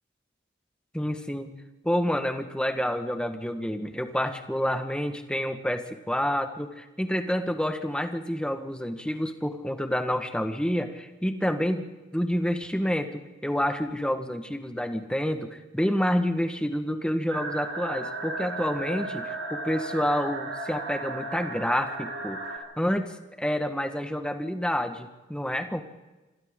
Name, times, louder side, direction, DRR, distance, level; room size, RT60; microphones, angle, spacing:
voice 1, 0.9-1.5 1.8-25.8, equal, 5° left, 7 dB, 1.5 m, -28 dB
sound 1, 17.3-22.6, right 2 dB, 80° right, 5.5 m, -35 dB
27.0 x 26.0 x 3.9 m, 1.1 s
head